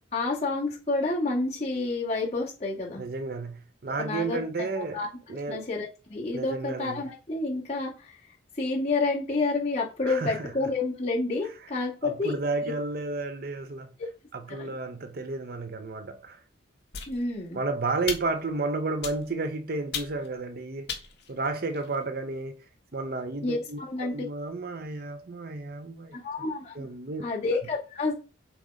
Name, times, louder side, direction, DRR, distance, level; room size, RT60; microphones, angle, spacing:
voice 1, 0.1-3.0 4.0-5.1 5.5-8.2 8.5-12.3 12.6-12.7 14.0-14.1 14.5-14.8 17.1-17.6 23.4-24.1 26.1-26.8 27.2-28.1, left 3 dB, 35° left, 2.5 m, -29 dB
voice 2, 3.0-5.0 5.3-5.7 6.3-7.0 10.0-10.5 12.0-13.9 14.3-16.4 17.5-20.9 21.3-22.6 22.9-26.2 26.7-27.2, right 3 dB, 50° right, 0.6 m, -32 dB
sound 1, 16.9-17.5 18.1-18.5 19.0-19.5 19.9-20.4 20.9-22.0, left 7 dB, 55° left, 1.4 m, -37 dB
7.6 x 3.0 x 4.9 m
head